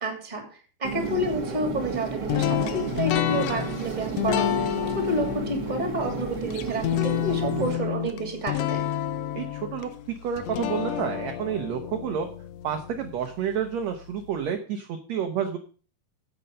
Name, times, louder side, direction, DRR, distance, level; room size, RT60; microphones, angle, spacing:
voice 1, 0.0-0.4 0.8-4.7 4.9-8.9, right 1 dB, 15° right, 3 dB, 2.2 m, -29 dB
sound 1, 0.8-7.8, right 6 dB, 50° right, 1.3 m, -33 dB
sound 2, 2.3-13.3, left 11 dB, 85° left, 1.4 m, -29 dB
voice 2, 7.4-7.9 9.3-9.9 10.2-12.3 12.6-15.6, right 8 dB, 70° right, 5 dB, 1.8 m, -30 dB
9.8 x 8.0 x 5.2 m, 0.39 s
omnidirectional pair, 3.9 m